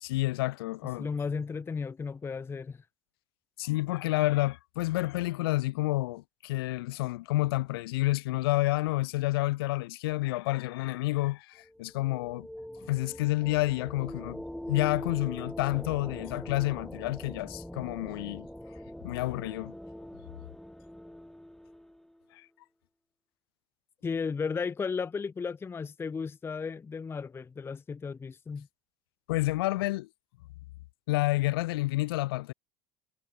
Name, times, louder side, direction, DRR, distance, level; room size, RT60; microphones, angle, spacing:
voice 1, 0.0-1.1 3.6-12.5 12.9-14.4 14.7-18.5 19.0-19.7 22.3-22.4 29.3-30.1 31.1-32.5, left 19 dB, 75° left, 1.1 m, -29 dB
voice 2, 1.0-2.8 24.0-28.7, left 5 dB, 20° left, 0.5 m, -34 dB
sound 1, 11.6-22.2, equal, ahead, 1.3 m, -43 dB
hypercardioid pair, 75°, 13 cm